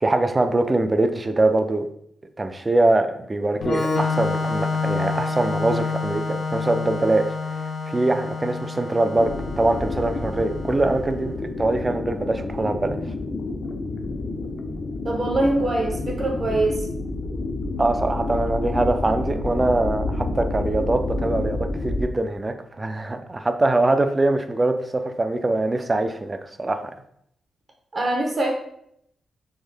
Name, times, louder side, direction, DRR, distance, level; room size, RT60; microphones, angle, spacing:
voice 1, 0.0-1.9 2.4-9.3 9.6-13.0 17.8-26.9, right 2 dB, 25° right, 8 dB, 0.3 m, -23 dB
Organ, 3.6-11.1, left 4 dB, 85° left, 0.9 m, -28 dB
sound 1, 9.2-22.0, left 2 dB, 55° left, 0.4 m, -29 dB
voice 2, 15.0-16.9 27.9-28.5, right 2 dB, 45° right, 0 dB, 0.8 m, -23 dB
3.6 x 2.1 x 3.3 m, 0.72 s
cardioid pair, 90°, 0 cm